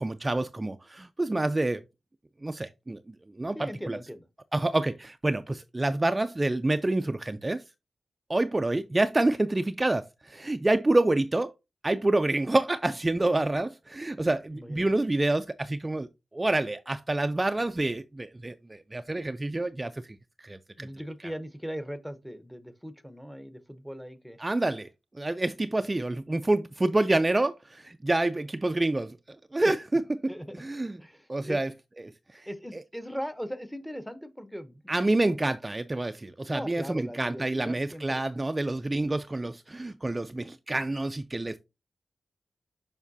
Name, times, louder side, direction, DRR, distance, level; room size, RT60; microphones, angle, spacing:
voice 1, 0.0-1.8 2.4-4.0 4.5-7.6 8.3-11.5 11.8-16.1 16.3-20.0 20.4-20.9 24.4-24.9 25.2-29.2 29.5-30.3 30.6-31.0 31.3-31.7 32.3-32.5 34.9-41.6, right 2 dB, 25° right, 0.3 m, -27 dB
voice 2, 3.5-4.3 14.5-14.8 20.8-24.4 29.6-29.7 30.3-30.6 31.0-31.6 32.5-35.5 36.5-38.2, equal, 5° left, 0.7 m, -39 dB
7.1 x 5.3 x 2.7 m
wide cardioid pair, 85°, 0 cm